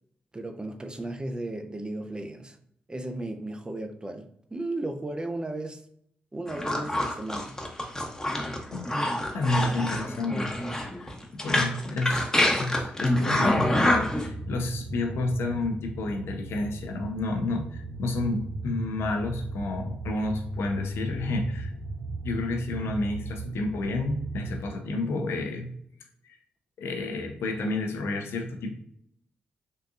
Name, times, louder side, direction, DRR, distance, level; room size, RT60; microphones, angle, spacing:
voice 1, 0.3-2.6 2.9-5.8 6.3-7.6 11.9-12.0, right 2 dB, 20° right, 6 dB, 0.5 m, -35 dB
sound 1, 6.5-14.3, left 1 dB, 15° left, 0.8 m, -26 dB
voice 2, 9.3-10.5 11.0-12.3 12.6-21.7 22.2-25.7 26.2-26.4 26.8-28.8, left 2 dB, 80° left, 4 dB, 0.6 m, -30 dB
sound 2, 13.0-24.6, right 2 dB, 80° right, 0.5 m, -36 dB
3.7 x 2.6 x 2.4 m, 0.69 s
supercardioid pair, 40°, 4 cm